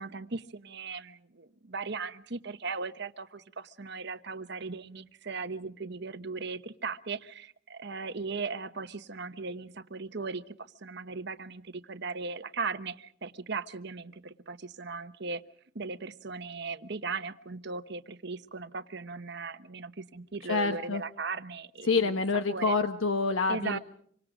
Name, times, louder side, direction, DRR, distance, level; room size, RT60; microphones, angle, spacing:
voice 1, 0.0-15.4 15.7-22.1 22.5-22.7 23.5-23.8, right 4 dB, 60° right, 11 dB, 1.1 m, -38 dB
voice 2, 20.5-21.0 21.8-23.8, left 4 dB, 80° left, 8 dB, 1.1 m, -27 dB
26.5 x 25.0 x 5.1 m, 0.62 s
head